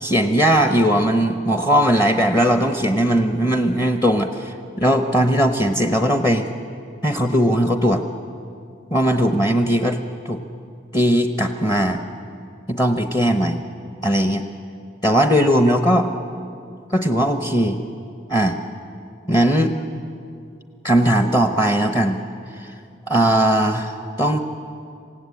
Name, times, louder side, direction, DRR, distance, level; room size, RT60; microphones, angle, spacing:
voice 1, 0.0-6.5 7.0-8.0 8.9-10.0 10.2-10.4 10.9-12.0 12.7-13.6 14.0-14.5 15.0-16.1 16.9-17.8 18.3-18.6 19.3-19.7 20.8-22.2 22.6-22.7 23.1-24.4, equal, 20° left, 6 dB, 1.0 m, -18 dB
27.5 x 17.5 x 8.5 m, 2.4 s
head